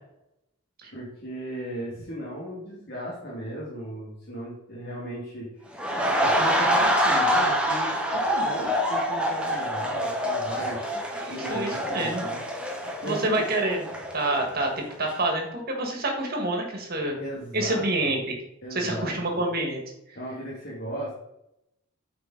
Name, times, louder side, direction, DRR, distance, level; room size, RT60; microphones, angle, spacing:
voice 1, 0.9-5.6 6.1-10.8 11.3-12.4 12.7-13.5 16.9-18.1 18.6-19.4 20.1-21.1, equal, 50° left, -6 dB, 2.0 m, -36 dB
sound 1, 5.7-14.6 14.9-15.1, equal, 5° right, 1.0 m, -26 dB
voice 2, 11.2-12.2 13.0-13.8 14.1-14.7 15.0-17.2 17.5-18.4 18.7-19.8, right 2 dB, 45° right, 2 dB, 1.8 m, -27 dB
8.0 x 4.9 x 4.0 m, 0.83 s
head